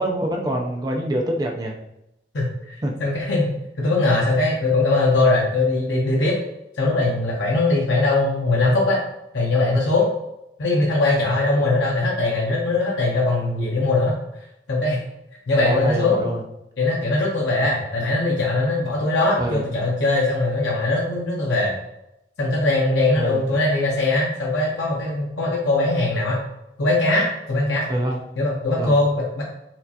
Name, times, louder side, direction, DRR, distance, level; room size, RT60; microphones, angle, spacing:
voice 1, 0.0-1.7 2.8-2.9 15.6-16.4 19.4-19.6 23.2-23.4 27.9-28.2 28.8-29.0, right 1 dB, 20° right, 2 dB, 0.4 m, -25 dB
voice 2, 2.3-6.3 6.8-9.0 9.3-10.1 10.6-14.1 14.7-15.0 15.5-16.3 16.8-21.7 22.4-26.4 26.8-27.9 28.4-29.4, left 2 dB, 80° left, -4 dB, 0.7 m, -21 dB
4.3 x 2.4 x 2.7 m, 0.85 s
head